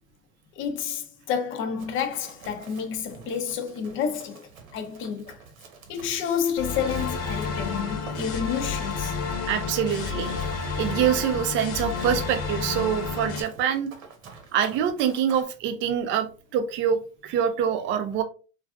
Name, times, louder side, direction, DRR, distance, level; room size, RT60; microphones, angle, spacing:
voice 1, 0.6-5.4 5.9-9.2, left 7 dB, 30° left, 0.5 m, -30 dB
Run, 1.8-15.4, right 5 dB, 85° right, 1.0 m, -49 dB
sound 1, 6.6-13.4, left 5 dB, 60° left, 0.9 m, -30 dB
voice 2, 9.5-13.9 14.5-18.2, right 8 dB, 30° right, 0.4 m, -25 dB
3.3 x 2.4 x 2.3 m
supercardioid pair, 120°, 40 cm